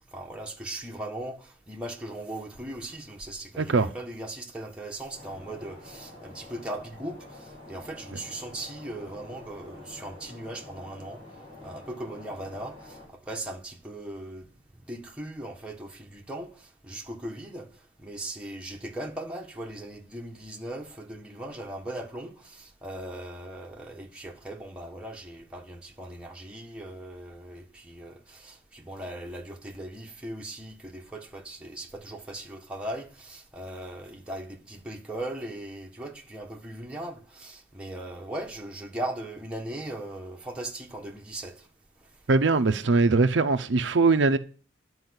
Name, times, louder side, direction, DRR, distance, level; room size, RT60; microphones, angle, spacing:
voice 1, 0.1-11.2 11.6-14.5 14.9-17.7 18.0-41.7, right 1 dB, 5° right, 1.4 m, -39 dB
voice 2, 3.6-3.9 42.3-44.4, right 3 dB, 70° right, 0.6 m, -21 dB
sound 1, 5.1-13.1, left 1 dB, 25° left, 7.1 m, -47 dB
11.0 x 4.8 x 8.0 m
head